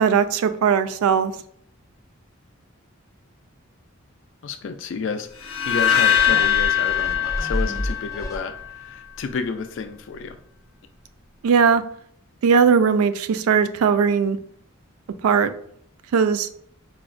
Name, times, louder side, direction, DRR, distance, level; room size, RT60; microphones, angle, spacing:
voice 1, 0.0-1.3 11.4-11.8 12.4-14.4 15.2-15.5 16.1-16.5, right 6 dB, 80° right, 11 dB, 0.3 m, -18 dB
voice 2, 4.4-10.4, left 5 dB, 55° left, 9 dB, 0.3 m, -31 dB
sound 1, 5.4-8.6, left 9 dB, 85° left, 0.7 m, -21 dB
sound 2, 6.2-8.9 9.3-9.4, left 1 dB, 15° left, 0.6 m, -30 dB
4.6 x 2.1 x 2.4 m, 0.63 s
head